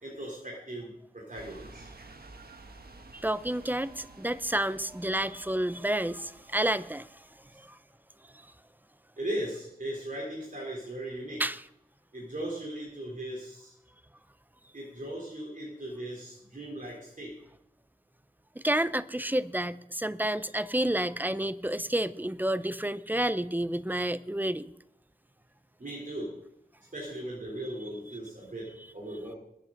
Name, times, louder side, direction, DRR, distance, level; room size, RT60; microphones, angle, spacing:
voice 1, 0.0-1.9 7.5-7.6 9.2-11.4 12.1-13.7 14.7-17.3 25.8-26.3 26.9-29.4, right 1 dB, 60° right, -3 dB, 3.7 m, -38 dB
sound 1, 1.3-7.6, right 3 dB, 85° right, 1.3 m, -52 dB
voice 2, 3.1-7.2 7.6-7.8 11.4-11.6 18.6-24.7, right 1 dB, 10° right, 15 dB, 0.6 m, -30 dB
21.0 x 8.8 x 3.9 m, 0.79 s
wide cardioid pair, 60°, 15 cm